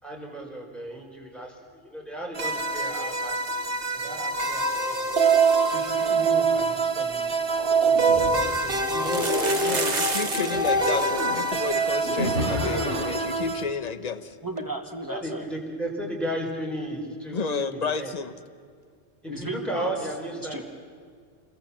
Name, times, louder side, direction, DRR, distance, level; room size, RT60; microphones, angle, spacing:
voice 1, 0.0-3.4 3.9-4.6 5.7-9.1 9.5-10.0 15.1-18.2 19.2-20.6, right 1 dB, ahead, -2 dB, 5.0 m, -35 dB
sound 1, 2.4-13.6, right 4 dB, 55° right, 1.6 m, -25 dB
sound 2, 7.3-7.4 7.7-7.8 8.9-10.7 10.9-11.0 11.2-11.5 12.0-12.1 12.4-12.5 14.6-14.7, right 4 dB, 40° right, 1.4 m, -30 dB
sound 3, 7.4-8.3 9.0-11.4 12.0-13.0, equal, 65° left, 8.0 m, -31 dB
voice 2, 9.0-14.3 17.3-18.3, left 5 dB, 40° left, 12 dB, 1.1 m, -31 dB
voice 3, 14.4-15.5 19.3-20.0 20.4-20.6, right 1 dB, 20° right, 4 dB, 2.0 m, -34 dB
28.5 x 22.0 x 7.4 m, 2.1 s
omnidirectional pair, 1.2 m